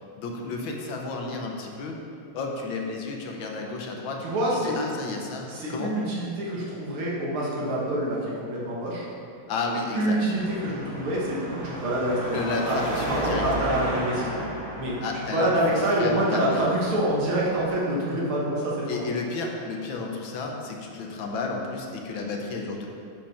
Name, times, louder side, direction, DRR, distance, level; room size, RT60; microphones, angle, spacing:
voice 1, 0.2-2.0 2.3-4.2 4.6-5.9 9.5-10.2 12.2-13.6 15.0-16.7 18.9-22.9, left 3 dB, 70° left, 1 dB, 1.6 m, -32 dB
voice 2, 4.2-4.7 5.5-9.1 9.9-12.8 13.1-14.4 14.8-19.1, right 1 dB, 75° right, -5 dB, 2.4 m, -26 dB
Car passing by / Traffic noise roadway noise / Engine, 10.4-17.7, right 2 dB, 50° right, 1.6 m, -34 dB
7.4 x 5.3 x 5.7 m, 2.4 s
omnidirectional pair, 2.4 m